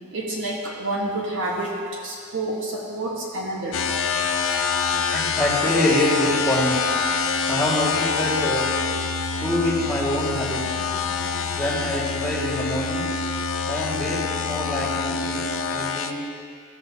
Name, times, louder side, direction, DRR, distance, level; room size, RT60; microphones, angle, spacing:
voice 1, 0.1-3.8, right 1 dB, 60° right, -2 dB, 1.2 m, -28 dB
sound 1, 3.7-16.1, left 5 dB, 65° left, 0.5 m, -26 dB
voice 2, 5.1-6.8 7.5-8.7 9.4-10.9 11.5-13.1 13.7-15.4 15.7-16.2, left 1 dB, ahead, -9 dB, 2.0 m, -25 dB
15.0 x 7.4 x 2.8 m, 2.2 s
head